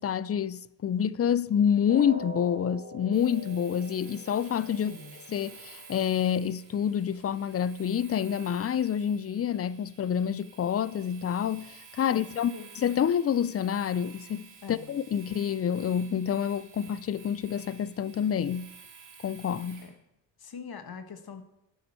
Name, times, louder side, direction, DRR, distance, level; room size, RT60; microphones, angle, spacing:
voice 1, 0.0-4.9 5.3-18.7 19.2-19.8, left 8 dB, 35° left, 0.4 m, -28 dB
sound 1, 1.9-7.9 8.2-8.4 8.9-9.0, right 1 dB, 20° right, 3.6 m, -45 dB
Domestic sounds home sounds, 3.1-19.9, right 5 dB, 80° right, 3.2 m, -52 dB
voice 2, 4.8-5.1 12.1-12.7 14.6-15.0 19.8-19.9 20.4-21.4, left 6 dB, 50° left, 1.3 m, -43 dB
11.5 x 7.5 x 4.4 m
supercardioid pair, 55°, 46 cm